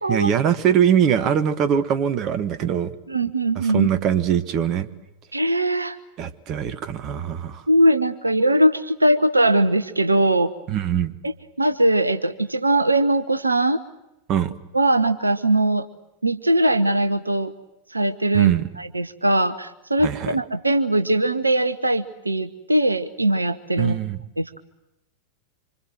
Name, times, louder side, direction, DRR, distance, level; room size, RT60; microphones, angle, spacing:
voice 1, 0.1-3.0 3.5-4.9 6.2-7.6 10.7-11.1 14.3-14.5 18.3-18.7 20.0-20.4 23.8-24.2, right 9 dB, 35° right, 14 dB, 1.5 m, -22 dB
voice 2, 3.1-3.9 5.3-6.0 7.7-10.5 11.2-13.8 14.7-15.9 16.2-17.5 17.9-23.9 24.4-24.6, right 1 dB, 80° right, 12 dB, 1.0 m, -20 dB
26.0 x 26.0 x 7.8 m, 0.90 s
figure-of-eight pair, 90°, 0 cm